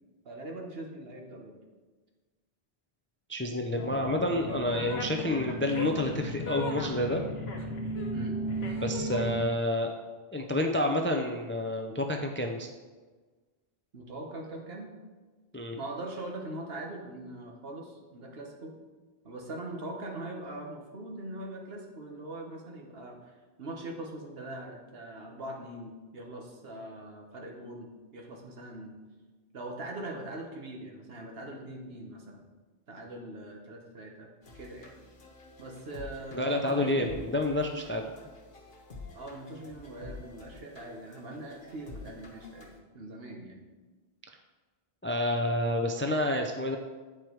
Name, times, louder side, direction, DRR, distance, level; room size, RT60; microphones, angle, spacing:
voice 1, 0.2-1.6 8.1-8.4 13.9-14.9 15.8-18.7 19.2-23.3 23.6-28.9 29.5-32.4 32.9-34.3 34.5-34.9 35.6-37.2 39.1-43.6, right 1 dB, 70° right, 0 dB, 1.4 m, -42 dB
voice 2, 3.3-7.2 8.8-9.9 10.3-12.7 15.5-15.8 36.3-38.1 45.0-46.8, left 1 dB, 20° left, 4 dB, 0.3 m, -29 dB
sound 1, 3.8-9.4, left 1 dB, 85° left, 1.1 m, -34 dB
sound 2, 34.4-42.8, left 2 dB, 70° left, 1.3 m, -49 dB
8.9 x 4.7 x 4.6 m, 1.3 s
omnidirectional pair, 1.0 m